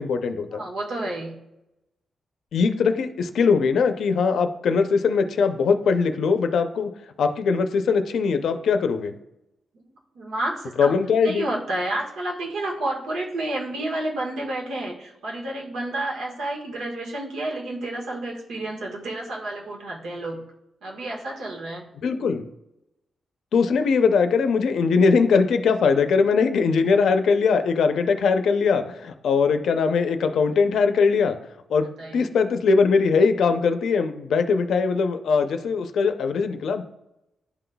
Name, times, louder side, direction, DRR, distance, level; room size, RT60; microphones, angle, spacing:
voice 1, 0.0-0.6 2.5-6.9 7.2-9.1 10.8-11.5 22.0-22.5 23.5-31.4 31.7-36.8, left 5 dB, 70° left, 8 dB, 0.5 m, -21 dB
voice 2, 0.5-1.3 9.8-11.0 11.2-20.4 20.8-21.8 32.0-32.3, right 1 dB, 90° right, -1 dB, 1.5 m, -30 dB
11.5 x 3.9 x 2.3 m, 0.88 s
wide cardioid pair, 180°, 0 cm